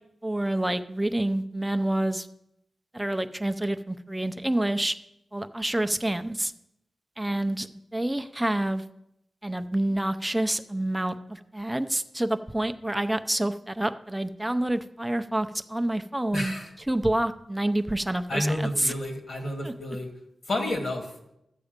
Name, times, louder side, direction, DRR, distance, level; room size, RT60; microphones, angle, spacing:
voice 1, 0.2-2.3 2.9-4.9 5.3-6.5 7.2-8.8 9.4-16.5 16.9-18.9 19.6-19.7, right 1 dB, 10° right, 8 dB, 0.5 m, -28 dB
voice 2, 16.3-16.7 18.3-20.1 20.5-21.1, left 1 dB, 50° left, 4 dB, 1.7 m, -30 dB
12.5 x 8.3 x 5.2 m, 0.83 s
wide cardioid pair, 145°, 0 cm